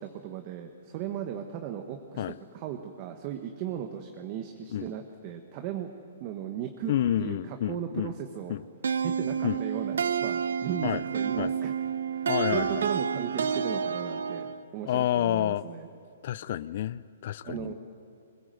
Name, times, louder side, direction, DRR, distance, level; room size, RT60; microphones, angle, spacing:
voice 1, 0.0-2.2 2.5-5.9 6.2-6.9 7.2-8.6 9.0-11.7 12.1-15.9 17.4-17.7, right 10 dB, 35° right, 5 dB, 1.4 m, -37 dB
voice 2, 6.9-8.1 8.5-8.6 9.4-9.6 10.8-11.0 11.4-11.5 12.3-12.9 14.9-15.6 16.2-17.7, left 12 dB, 50° left, 18 dB, 0.5 m, -29 dB
sound 1, 8.8-14.6, right 7 dB, 80° right, 0.8 m, -29 dB
21.5 x 21.0 x 7.8 m, 2.5 s
hypercardioid pair, 150°, 0 cm